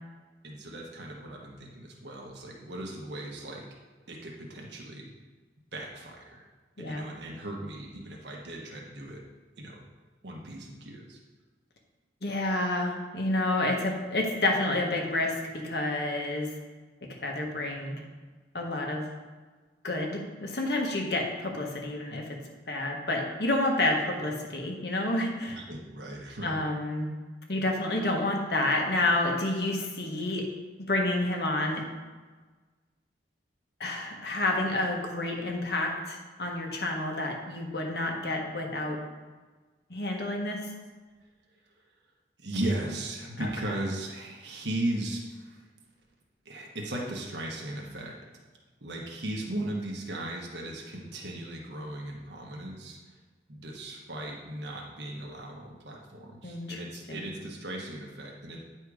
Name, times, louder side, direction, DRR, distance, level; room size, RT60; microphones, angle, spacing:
voice 1, 0.4-3.6 4.1-5.1 5.7-6.5 6.8-9.2 9.6-9.8 10.2-11.2 25.5-26.6 42.4-45.7 46.4-48.2 48.8-53.1 53.5-58.6, right 1 dB, 85° right, -1 dB, 1.3 m, -37 dB
voice 2, 12.2-16.5 17.2-18.0 18.5-19.0 19.8-22.3 22.7-25.6 26.4-27.1 27.5-30.5 30.9-31.8 33.8-39.0 39.9-40.6 43.4-43.5 56.4-56.8 57.1-57.3, left 2 dB, 70° left, 0 dB, 1.5 m, -29 dB
9.8 x 4.5 x 4.9 m, 1.3 s
head